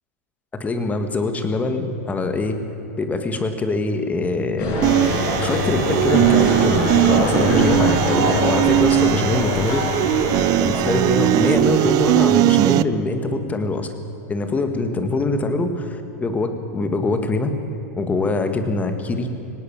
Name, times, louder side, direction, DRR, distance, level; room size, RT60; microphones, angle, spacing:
voice 1, 0.5-2.6 3.0-4.8 5.4-9.9 10.6-13.9 14.3-17.5 18.0-19.3, left 3 dB, 15° left, 7 dB, 1.9 m, -23 dB
sound 1, 4.6-12.6, left 1 dB, 50° left, 6.8 m, -23 dB
sound 2, 4.8-12.8, right 17 dB, 45° right, 0.6 m, -19 dB
18.5 x 18.0 x 8.9 m, 2.8 s
hypercardioid pair, 120°, 9 cm